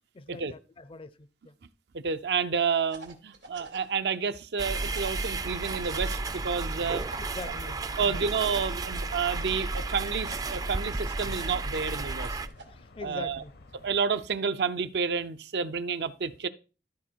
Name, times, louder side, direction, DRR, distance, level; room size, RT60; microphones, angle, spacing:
voice 1, 0.1-1.6 7.2-8.3 10.5-10.7 12.7-13.6, left 3 dB, 30° left, 0.5 m, -43 dB
voice 2, 1.9-7.0 8.0-12.4 13.0-13.4 13.8-16.5, right 5 dB, 65° right, 0.6 m, -30 dB
sound 1, 2.9-3.9 4.9-5.9 7.0-8.3 9.4-10.7 11.6-12.7, right 3 dB, 90° right, 2.1 m, -48 dB
sound 2, 4.6-12.5, right 3 dB, 20° right, 0.4 m, -33 dB
sound 3, 6.0-14.0, left 2 dB, 60° left, 0.8 m, -51 dB
12.5 x 4.3 x 4.5 m
head